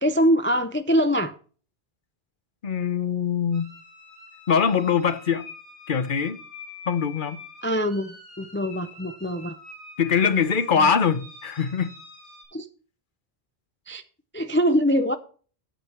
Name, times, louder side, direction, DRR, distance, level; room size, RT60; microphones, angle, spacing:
voice 1, 0.0-1.3 7.6-9.6 10.8-10.9 12.5-12.7 13.9-14.0 14.3-15.2, equal, 15° left, 0.5 m, -23 dB
voice 2, 2.6-3.7 4.5-5.5 5.9-6.4 6.9-7.4 10.0-11.9, left 6 dB, 55° left, 1.0 m, -23 dB
sound 1, 3.5-12.4, left 3 dB, 85° left, 6.1 m, -45 dB
8.9 x 8.7 x 4.4 m
omnidirectional pair, 1.1 m